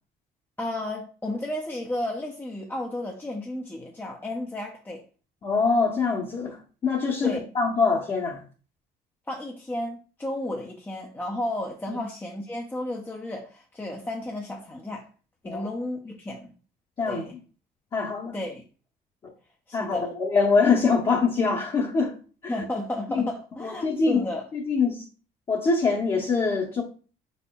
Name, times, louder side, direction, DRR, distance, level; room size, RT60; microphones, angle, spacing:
voice 1, 0.6-5.0 7.2-7.4 9.3-15.1 15.4-16.5 17.1-17.3 18.3-18.7 19.7-20.1 22.5-24.5, left 1 dB, 10° left, 0.5 m, -33 dB
voice 2, 5.4-8.4 11.9-12.0 15.5-15.6 17.0-17.2 17.9-18.3 19.7-22.2 22.4-22.5 23.1-23.3 23.6-24.2 24.5-25.1 25.5-26.8, left 4 dB, 35° left, 0.8 m, -24 dB
4.3 x 4.2 x 2.2 m
cardioid pair, 110°, 17 cm